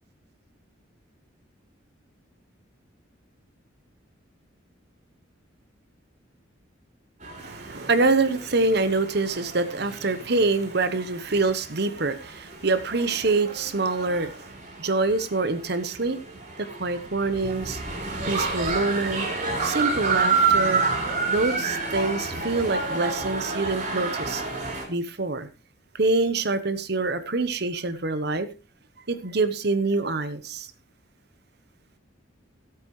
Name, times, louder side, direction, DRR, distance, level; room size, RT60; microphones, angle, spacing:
sound 1, 7.2-24.8, right 4 dB, 40° right, 4.0 m, -30 dB
voice 1, 7.4-16.2 16.6-17.8 18.2-20.8 21.3-24.4 24.9-25.5 25.9-28.5 29.1-30.7, right 3 dB, 55° right, 1.0 m, -25 dB
17.0 x 8.2 x 3.2 m
head